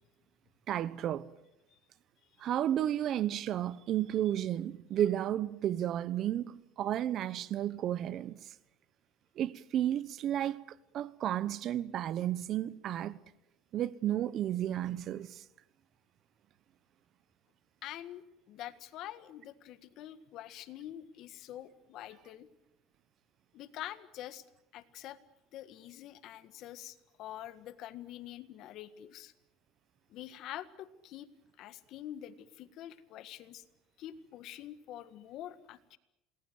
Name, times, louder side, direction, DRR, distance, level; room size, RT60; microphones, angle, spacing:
voice 1, 0.7-1.3 2.4-8.4 9.4-10.6 10.9-13.2 13.7-15.4, right 11 dB, 50° right, 1.1 m, -32 dB
voice 2, 17.8-22.5 23.5-24.4 24.7-25.2 25.5-29.3 30.1-31.3 31.6-33.6 34.0-36.0, left 12 dB, 60° left, 1.7 m, -46 dB
28.0 x 20.5 x 7.9 m
cardioid pair, 115°, 0 cm